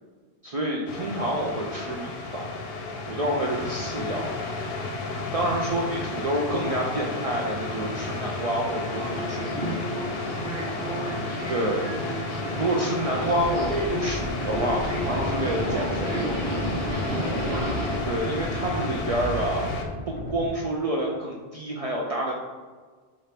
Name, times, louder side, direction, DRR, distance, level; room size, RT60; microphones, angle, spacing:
voice 1, 0.4-2.5 3.1-4.3 5.3-9.6 11.5-11.9 12.6-16.6 18.0-19.6 20.3-22.3, right 1 dB, 55° right, -2 dB, 0.4 m, -28 dB
sound 1, 0.9-19.8, left 3 dB, 70° left, 0.8 m, -32 dB
voice 2, 5.2-6.3 10.3-11.0, left 1 dB, 10° left, -6 dB, 1.2 m, -43 dB
Subway metro underground, 8.9-18.0, right 1 dB, 75° right, 1.0 m, -32 dB
sound 2, 13.1-20.5, equal, 40° left, 0.5 m, -35 dB
4.2 x 2.5 x 3.3 m, 1.4 s
omnidirectional pair, 1.0 m